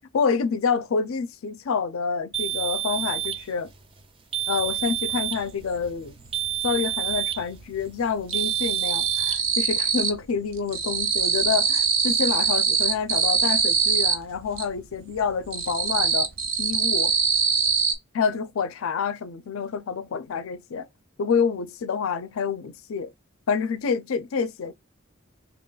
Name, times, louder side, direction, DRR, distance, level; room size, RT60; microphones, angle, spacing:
voice 1, 0.1-3.7 4.5-6.1 6.6-16.3 16.6-17.1 18.1-20.9 21.2-23.1 23.5-24.7, left 5 dB, 85° left, 0.4 m, -27 dB
sound 1, 2.3-3.5 4.3-5.5 6.3-7.5 8.3-9.4, right 12 dB, 25° right, 0.4 m, -28 dB
sound 2, 4.7-4.8 5.1-6.4 6.6-7.3 7.6-10.3 10.5-14.7 15.1-17.9, right 6 dB, 70° right, 0.6 m, -24 dB
2.9 x 2.3 x 3.7 m
head